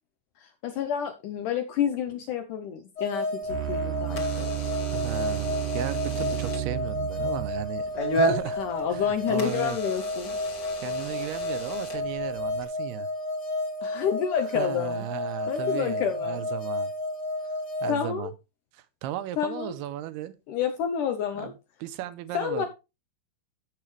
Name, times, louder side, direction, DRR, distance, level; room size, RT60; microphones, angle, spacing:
voice 1, 0.4-4.5 8.6-10.4 13.8-15.1 15.5-16.4 17.9-18.3 19.4-19.7 20.5-21.5 22.3-22.7, left 8 dB, 80° left, 1.8 m, -29 dB
sound 1, 3.0-17.9, left 2 dB, 60° left, 1.7 m, -32 dB
Door / Alarm, 3.4-12.6, equal, 40° left, 1.6 m, -35 dB
sound 2, 3.5-7.9, right 12 dB, 65° right, 1.5 m, -32 dB
voice 2, 4.1-4.5 4.9-7.9 8.1-8.6 8.9-9.8 10.8-13.1 14.5-16.9 17.8-18.3 18.7-20.3 21.4-21.5 21.8-22.7, right 12 dB, 80° right, 2.6 m, -35 dB
13.5 x 6.7 x 3.2 m
omnidirectional pair, 4.7 m